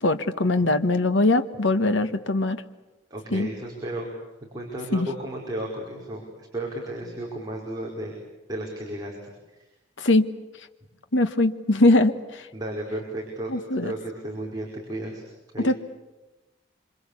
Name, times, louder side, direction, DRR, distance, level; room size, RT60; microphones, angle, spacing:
voice 1, 0.0-2.6 3.3-3.5 4.9-5.1 10.0-10.3 11.1-12.5 13.5-13.9 15.6-15.8, left 2 dB, 80° left, 9 dB, 1.3 m, -21 dB
voice 2, 3.1-4.1 4.5-8.1 8.5-9.6 12.5-13.6 13.8-15.2 15.5-15.7, right 1 dB, 20° right, -2 dB, 5.1 m, -34 dB
26.5 x 26.0 x 8.4 m, 1.1 s
head